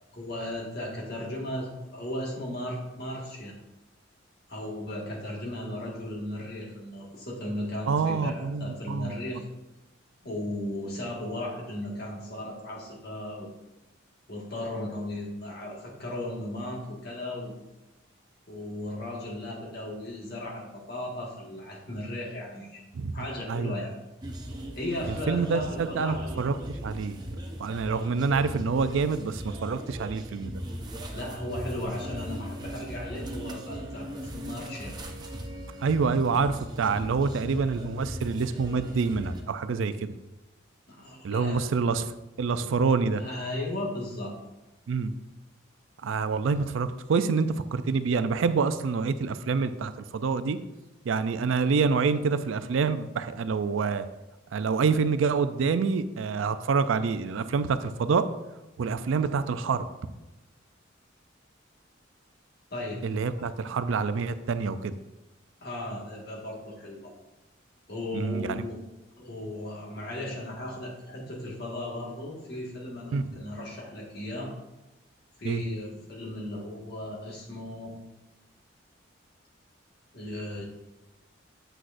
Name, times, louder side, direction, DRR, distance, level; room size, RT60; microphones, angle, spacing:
voice 1, 0.1-3.5 4.5-9.4 10.2-13.5 14.3-17.6 18.5-22.8 23.1-23.9 24.7-26.4 31.1-34.9 40.9-41.7 43.2-44.4 62.7-63.0 65.6-67.1 67.9-68.8 69.2-74.5 75.4-77.9 80.1-80.6, left 1 dB, 55° left, -2 dB, 1.6 m, -36 dB
voice 2, 7.8-9.1 22.9-23.8 25.1-27.2 27.6-30.6 35.8-40.1 41.2-43.2 44.9-45.1 46.0-50.6 51.0-54.0 54.5-58.2 58.8-59.9 63.0-64.9 68.1-68.7 73.1-73.2 75.4-75.6, right 5 dB, 80° right, 12 dB, 0.4 m, -27 dB
sound 1, 24.2-39.4, equal, 20° right, 0.6 m, -38 dB
7.9 x 6.1 x 2.5 m, 1.0 s
head